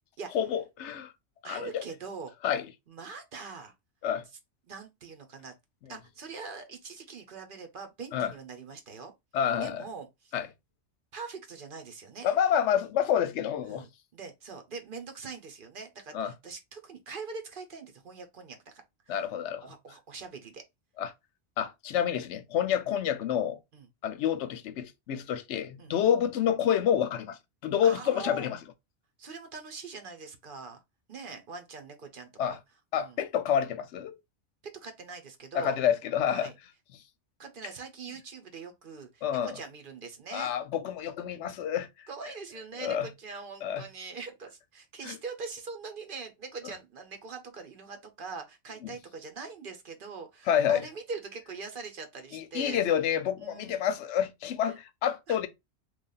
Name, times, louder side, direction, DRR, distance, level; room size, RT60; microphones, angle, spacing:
voice 1, 0.3-1.1 1.4-1.8 2.4-2.7 4.0-4.2 8.1-8.3 9.3-9.8 10.3-10.5 12.2-13.9 16.1-16.3 19.1-19.6 21.0-21.1 21.6-23.6 24.0-28.6 32.4-32.6 32.9-34.1 35.5-36.5 39.2-39.6 40.3-41.9 42.8-43.1 43.6-43.8 45.0-45.2 46.6-46.7 48.8-48.9 50.5-50.9 52.3-55.5, left 9 dB, 85° left, 0.9 m, -28 dB
voice 2, 1.4-2.3 2.9-3.7 4.7-5.5 5.9-9.1 9.6-10.3 11.1-12.3 13.6-19.2 19.6-20.6 23.7-23.9 25.8-25.9 27.8-28.5 29.2-30.8 31.1-32.6 32.9-33.2 34.7-35.8 36.3-36.5 37.4-40.5 42.1-52.8 53.4-53.8 54.6-54.7 55.3-55.4, right 4 dB, 55° right, 0.9 m, -43 dB
3.2 x 2.4 x 3.8 m
omnidirectional pair, 1.2 m